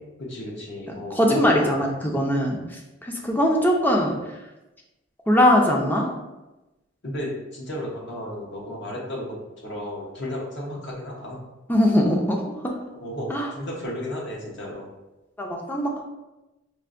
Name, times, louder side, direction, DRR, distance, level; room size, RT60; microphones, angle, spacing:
voice 1, 0.2-1.7 7.0-9.3 9.6-11.4 13.0-13.3 13.5-14.9, left 1 dB, 60° left, -3 dB, 0.9 m, -33 dB
voice 2, 0.9-2.6 3.0-4.1 5.3-6.1 11.7-12.7 13.3-13.5 15.4-16.0, equal, 10° left, 0 dB, 0.4 m, -21 dB
4.5 x 2.5 x 2.5 m, 1.0 s
head